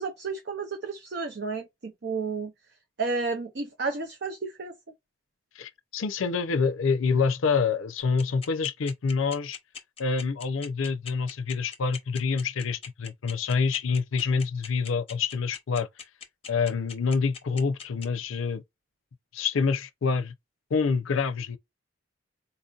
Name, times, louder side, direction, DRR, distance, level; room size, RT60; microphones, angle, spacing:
voice 1, 0.0-2.5 3.0-4.7, right 4 dB, 55° right, 0.6 m, -32 dB
voice 2, 5.6-9.6 10.0-15.9 16.5-18.6 19.3-20.3 20.7-21.6, left 5 dB, 80° left, 0.5 m, -27 dB
sound 1, 8.0-18.0, left 6 dB, 30° left, 0.7 m, -40 dB
4.1 x 2.7 x 2.3 m
head